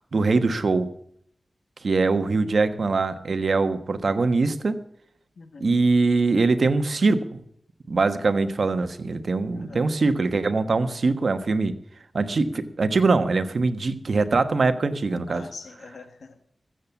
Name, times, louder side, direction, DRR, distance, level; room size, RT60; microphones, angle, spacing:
voice 1, 0.1-0.9 1.8-4.8 5.6-7.4 7.9-11.7 12.1-15.4, right 3 dB, 70° right, 10 dB, 1.2 m, -22 dB
voice 2, 5.4-5.8 9.5-10.0 12.6-13.0 15.3-16.4, left 4 dB, 85° left, 8 dB, 1.5 m, -44 dB
14.5 x 7.6 x 8.3 m, 0.69 s
cardioid pair, 60°, 0 cm